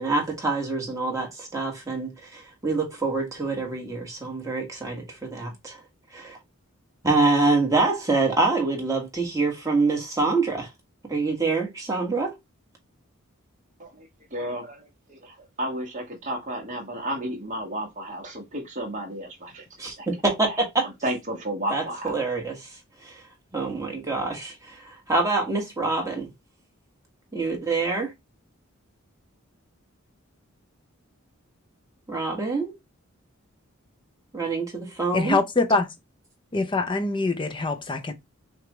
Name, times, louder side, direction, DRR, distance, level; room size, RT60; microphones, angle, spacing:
voice 1, 0.0-5.8 6.1-6.4 7.0-10.7 11.1-12.3 19.8-20.8 21.7-22.7 23.0-23.2 23.5-26.3 27.3-28.1 32.1-32.7 34.3-35.4, right 3 dB, 15° right, 1.4 m, -26 dB
voice 2, 13.8-20.1 20.8-22.1, right 1 dB, 35° right, 1.4 m, -33 dB
voice 3, 35.1-35.9 36.5-38.1, left 3 dB, 25° left, 0.6 m, -24 dB
5.8 x 2.4 x 3.1 m
head